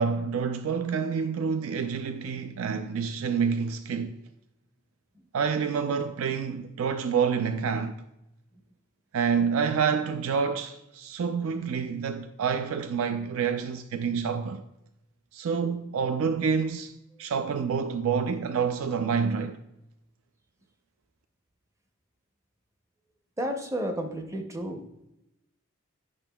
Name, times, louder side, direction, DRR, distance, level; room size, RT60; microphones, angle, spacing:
voice 1, 0.0-4.2 5.3-8.0 9.1-14.6 15.3-16.9 17.2-19.6, right 6 dB, 75° right, 0.4 m, -28 dB
voice 2, 23.4-25.1, right 1 dB, 15° right, 0.5 m, -33 dB
8.7 x 6.1 x 2.2 m
head